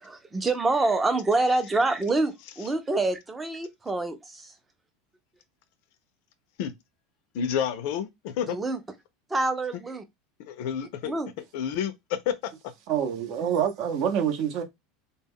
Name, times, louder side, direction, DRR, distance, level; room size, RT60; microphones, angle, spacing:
voice 1, 0.0-4.5 8.5-8.8 9.3-10.0 11.0-11.3, right 2 dB, 15° right, 0.5 m, -26 dB
voice 2, 7.3-8.6 10.4-11.1 11.5-12.5, left 8 dB, 65° left, 0.4 m, -29 dB
voice 3, 12.9-14.6, right 8 dB, 55° right, 0.6 m, -26 dB
2.2 x 2.0 x 3.5 m
supercardioid pair, 140°, 0 cm